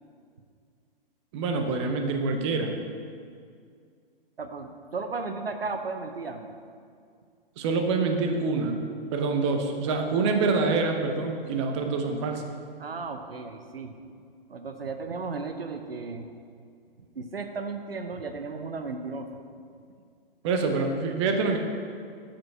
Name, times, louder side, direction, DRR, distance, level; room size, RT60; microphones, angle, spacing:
voice 1, 1.3-2.7 7.6-8.8 9.1-12.4 20.4-21.6, right 4 dB, 30° right, 4 dB, 0.7 m, -26 dB
voice 2, 4.4-6.6 12.8-14.0 14.5-16.3 17.2-19.3 20.8-20.9, right 4 dB, 80° right, 7 dB, 0.7 m, -35 dB
7.3 x 5.1 x 5.7 m, 2.2 s
figure-of-eight pair, 120°, 29 cm